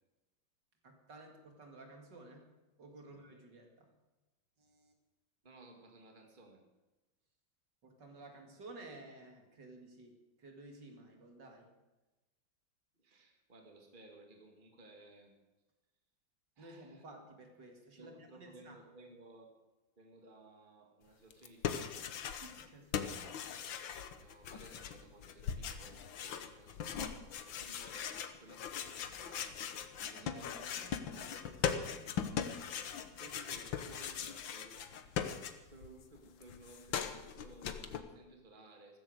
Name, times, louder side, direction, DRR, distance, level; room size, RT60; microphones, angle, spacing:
voice 1, 0.8-2.5 2.8-3.9 4.6-4.9 7.8-11.7 16.6-18.8 22.4-23.4 30.1-32.2, right 2 dB, 65° right, 3 dB, 3.0 m, -54 dB
voice 2, 5.4-6.6 13.0-15.3 16.6-17.0 18.0-19.5 20.0-22.1 24.2-28.1 28.4-29.7 30.1-30.5 32.4-32.8 33.2-35.3 35.7-39.0, right 2 dB, 25° right, 3 dB, 2.3 m, -58 dB
sound 1, 21.3-22.7 22.9-35.9 36.2-38.0, left 8 dB, 80° left, 1.8 m, -40 dB
14.5 x 14.5 x 6.5 m, 1.1 s
omnidirectional pair, 2.1 m